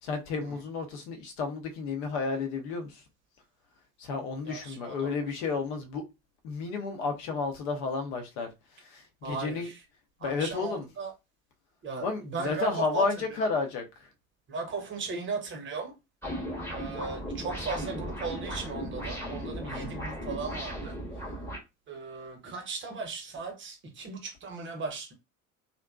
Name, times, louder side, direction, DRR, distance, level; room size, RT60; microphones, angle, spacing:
voice 1, 0.0-2.9 4.0-6.0 6.4-8.5 8.9-9.7 10.2-10.9 12.0-13.8, left 4 dB, 55° left, 0.8 m, -31 dB
voice 2, 4.4-5.4 9.2-9.8 10.2-11.1 11.8-13.4 14.5-15.9 16.7-21.0 21.9-25.1, right 4 dB, 30° right, 0.8 m, -37 dB
sound 1, 16.2-21.6, equal, 5° left, 0.9 m, -36 dB
2.5 x 2.2 x 2.2 m
figure-of-eight pair, 65°, 40 cm